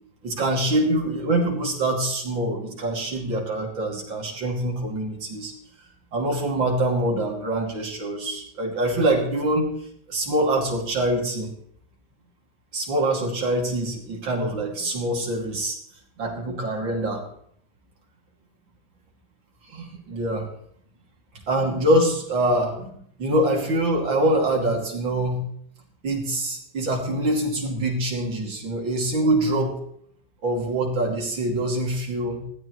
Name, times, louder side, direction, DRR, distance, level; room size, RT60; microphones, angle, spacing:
voice 1, 0.2-5.5 6.1-9.7 10.1-11.5 12.7-15.8 16.2-17.2 19.7-20.5 21.5-22.9 23.2-25.4 26.0-29.7 30.4-32.4, right 1 dB, 85° right, 0 dB, 3.3 m, -24 dB
20.0 x 15.0 x 3.2 m, 0.65 s
omnidirectional pair, 2.0 m